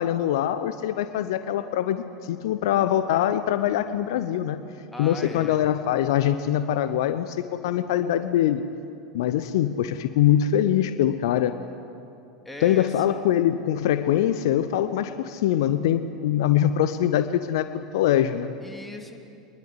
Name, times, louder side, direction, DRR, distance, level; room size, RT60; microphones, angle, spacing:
voice 1, 0.0-4.6 5.0-8.6 9.1-11.6 12.6-18.5, left 11 dB, 60° left, 11 dB, 0.8 m, -23 dB
voice 2, 4.9-5.6 12.4-13.2 18.6-19.2, left 1 dB, 5° left, 3 dB, 2.9 m, -38 dB
23.0 x 21.0 x 9.6 m, 2.6 s
figure-of-eight pair, 80°, 3 cm